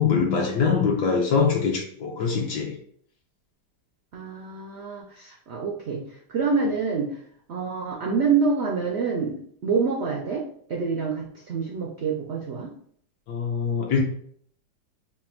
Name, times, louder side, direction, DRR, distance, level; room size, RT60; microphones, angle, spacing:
voice 1, 0.0-2.8 13.3-14.0, left 5 dB, 75° left, 0 dB, 1.3 m, -23 dB
voice 2, 4.1-7.2 7.5-12.7, right 5 dB, 80° right, -1 dB, 0.5 m, -27 dB
3.3 x 2.3 x 4.3 m, 0.63 s
omnidirectional pair, 1.8 m